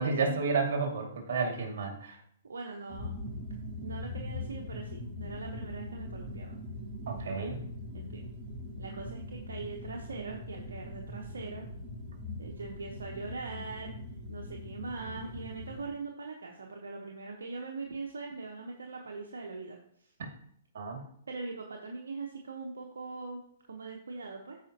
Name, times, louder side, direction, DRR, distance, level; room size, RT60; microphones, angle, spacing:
voice 1, 0.0-2.2 7.1-7.6 20.7-21.0, right 4 dB, 65° right, 3 dB, 2.2 m, -31 dB
voice 2, 2.4-3.2 3.8-6.6 7.2-7.6 7.9-8.3 8.8-11.7 12.4-13.9 14.3-19.8 21.3-23.4 23.7-24.6, right 4 dB, 85° right, 1 dB, 1.0 m, -41 dB
sound 1, 2.9-15.9, left 2 dB, 15° right, 2.8 m, -41 dB
13.5 x 5.0 x 2.9 m, 0.69 s
hypercardioid pair, 130°, 0 cm